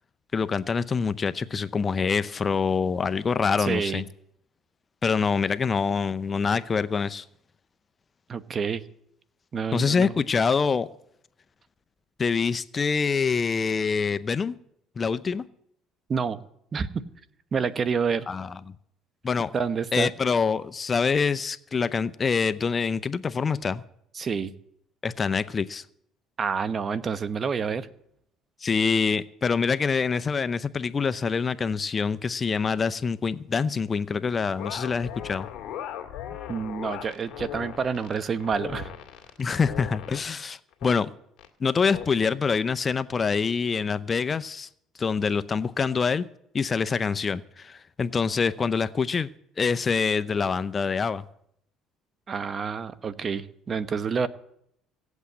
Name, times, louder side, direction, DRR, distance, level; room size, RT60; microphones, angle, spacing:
voice 1, 0.3-4.0 5.0-7.2 9.7-10.9 12.2-14.5 15.0-15.4 18.3-18.5 19.2-19.5 19.9-23.8 25.0-25.8 28.6-35.5 39.4-41.1 41.6-44.7 45.0-46.3 46.5-49.3 49.6-51.2, left 5 dB, 30° left, 13 dB, 0.6 m, -25 dB
voice 2, 3.6-4.0 8.3-8.8 9.5-10.1 16.1-16.4 16.7-17.0 17.5-18.3 19.5-20.1 24.1-24.5 26.4-27.9 36.5-38.9 52.3-54.3, right 6 dB, 40° right, 13 dB, 1.0 m, -28 dB
sound 1, 34.6-40.3 40.7-40.9 41.4-41.5 41.9-42.1, left 10 dB, 65° left, 2.1 m, -38 dB
16.5 x 8.2 x 8.5 m, 0.72 s
supercardioid pair, 85°, 0 cm